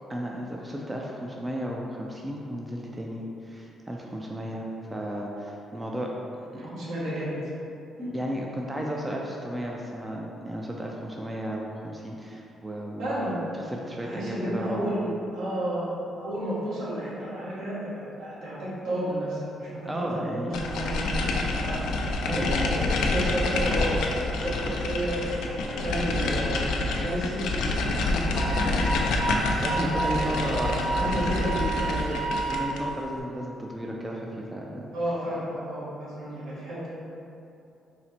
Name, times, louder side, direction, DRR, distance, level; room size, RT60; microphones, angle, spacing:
voice 1, 0.1-6.1 6.4-6.6 8.1-13.1 13.7-14.8 19.8-20.5 22.2-23.0 29.6-30.7 32.5-34.9, equal, 15° right, -1 dB, 0.4 m, -34 dB
voice 2, 6.5-7.5 8.0-8.1 13.0-13.4 14.0-15.9 16.2-21.8 22.3-24.0 24.3-29.1 29.6-32.2 34.9-36.9, equal, 80° right, -9 dB, 1.3 m, -32 dB
sound 1, 20.5-32.9, left 2 dB, 85° left, 0.3 m, -27 dB
Wind instrument woodwind instrument, 28.3-32.8, right 4 dB, 60° right, 0.8 m, -31 dB
4.1 x 2.0 x 4.2 m, 2.8 s
cardioid pair, 90°, 0 cm